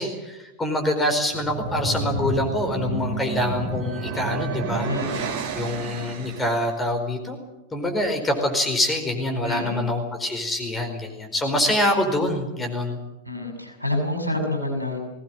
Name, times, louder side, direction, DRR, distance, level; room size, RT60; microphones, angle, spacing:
voice 1, 0.0-7.4 7.7-13.0, left 1 dB, 15° left, 4 dB, 4.7 m, -25 dB
sound 1, 1.2-6.7, right 2 dB, 50° right, 3.6 m, -30 dB
voice 2, 4.9-5.4 9.4-9.9 13.3-15.0, left 1 dB, 90° left, 3 dB, 6.6 m, -28 dB
21.5 x 18.0 x 9.1 m, 0.98 s
figure-of-eight pair, 90°, 0 cm